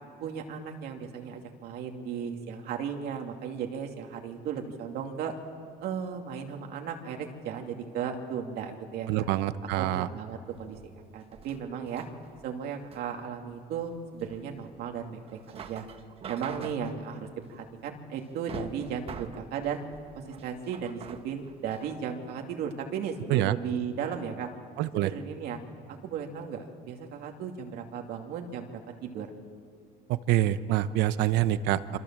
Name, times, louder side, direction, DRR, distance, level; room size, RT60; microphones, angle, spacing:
voice 1, 0.2-5.3 5.8-9.3 9.8-10.8 11.1-12.0 12.4-15.2 15.5-15.9 16.3-17.2 17.5-19.8 20.1-24.5 25.0-25.6 25.9-28.7 29.0-29.3, right 7 dB, 65° right, 2 dB, 2.5 m, -35 dB
voice 2, 9.1-10.1 23.3-23.6 24.8-25.1 30.1-31.8, right 13 dB, 85° right, 13 dB, 1.0 m, -26 dB
sound 1, 10.5-22.0, right 7 dB, 35° right, 1.2 m, -46 dB
26.5 x 26.0 x 7.5 m, 2.2 s
cardioid pair, 165°, 17 cm